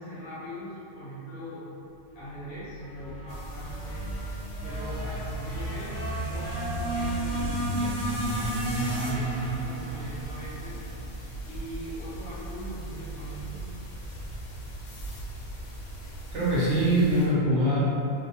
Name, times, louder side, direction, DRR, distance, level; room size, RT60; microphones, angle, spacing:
voice 1, 0.0-1.6 2.1-4.1 4.6-10.8 11.5-13.6, equal, 55° left, -10 dB, 0.9 m, -41 dB
sound 1, 2.8-11.1, right 1 dB, 25° left, 0.7 m, -32 dB
sound 2, 3.3-17.3, right 1 dB, 80° left, 0.9 m, -39 dB
voice 2, 16.3-17.8, right 1 dB, 70° right, -8 dB, 1.1 m, -23 dB
2.7 x 2.2 x 2.7 m, 2.7 s
omnidirectional pair, 1.3 m